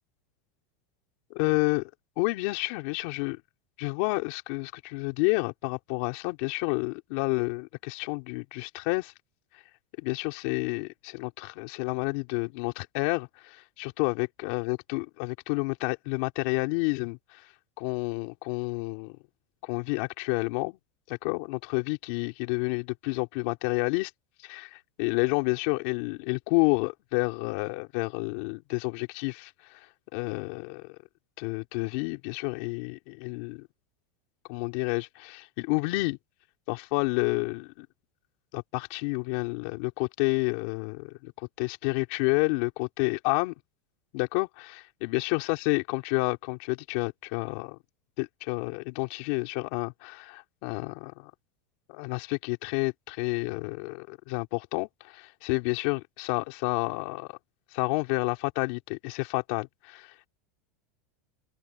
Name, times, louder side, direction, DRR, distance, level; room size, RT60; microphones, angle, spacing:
voice 1, 1.3-1.9 2.2-3.4 3.8-9.1 10.0-17.5 17.8-19.2 19.6-20.8 21.1-24.1 24.4-29.9 30.1-31.0 31.4-33.7 34.5-36.2 36.7-37.9 38.5-43.5 44.1-47.8 48.2-51.3 51.9-57.4 57.7-60.3, left 27 dB, 55° left, 3.7 m, -30 dB
open air
supercardioid pair, 155°, 7 cm